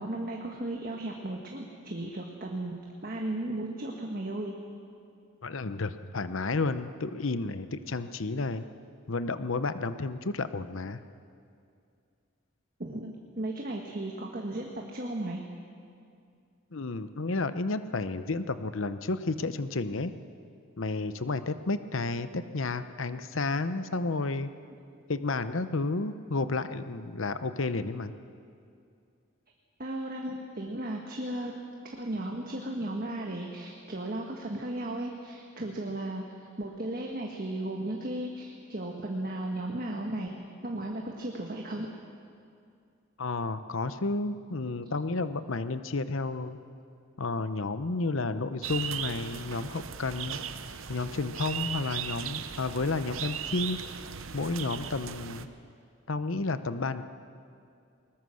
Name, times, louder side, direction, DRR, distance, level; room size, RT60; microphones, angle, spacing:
voice 1, 0.0-2.7 3.0-4.5 12.8-15.4 29.8-31.5 32.0-36.2 36.6-40.3 40.6-41.9, right 1 dB, 45° right, 1 dB, 1.5 m, -35 dB
voice 2, 5.4-8.6 9.1-11.0 16.7-20.1 20.8-24.5 25.1-28.1 43.2-46.6 47.2-50.4 50.9-53.8 54.3-55.5 56.1-57.0, left 3 dB, 65° left, 11 dB, 0.8 m, -31 dB
sound 1, 48.6-55.5, right 8 dB, 70° right, 0.8 m, -37 dB
21.0 x 20.0 x 6.5 m, 2.4 s
head